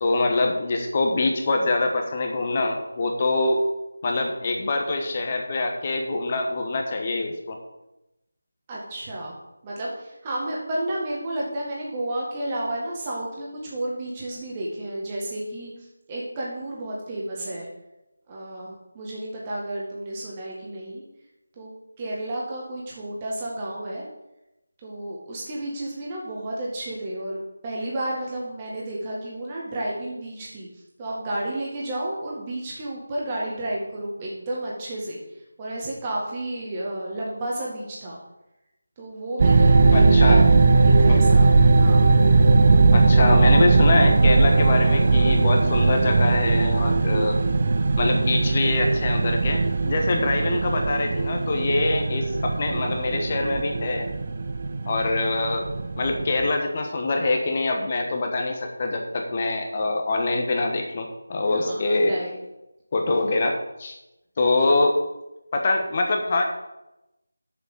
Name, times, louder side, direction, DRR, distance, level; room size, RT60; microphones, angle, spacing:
voice 1, 0.0-3.6 4.0-7.6 39.9-40.4 41.1-41.2 42.9-47.4 48.0-54.1 54.8-55.7 56.0-62.2 62.9-64.0 64.4-65.0 65.5-66.4, left 2 dB, 30° left, 3 dB, 1.2 m, -24 dB
voice 2, 8.7-9.4 9.6-17.7 18.3-21.0 21.6-21.7 22.0-24.0 24.8-30.7 31.0-35.2 35.6-38.2 39.0-40.5 40.8-42.1 61.5-62.4, right 1 dB, 20° right, -4 dB, 1.8 m, -31 dB
sound 1, 39.4-56.5, right 3 dB, 40° right, 0.6 m, -19 dB
7.0 x 6.5 x 6.7 m, 0.92 s
figure-of-eight pair, 165°, 0 cm